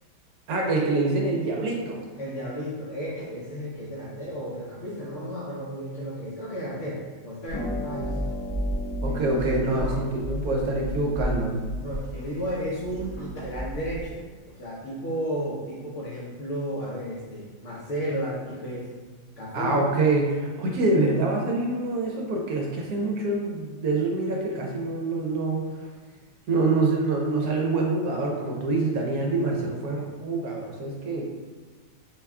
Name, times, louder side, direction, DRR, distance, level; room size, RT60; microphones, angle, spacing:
voice 1, 0.5-2.0 9.0-11.5 19.5-25.9 26.5-31.3, right 2 dB, 70° right, -1 dB, 1.0 m, -25 dB
voice 2, 2.2-8.2 9.1-10.0 11.8-18.9 19.4-19.9, equal, 65° left, -5 dB, 0.8 m, -33 dB
Harp, 7.5-14.2, equal, 85° left, 1.6 m, -32 dB
4.1 x 2.3 x 3.4 m, 1.4 s
omnidirectional pair, 1.8 m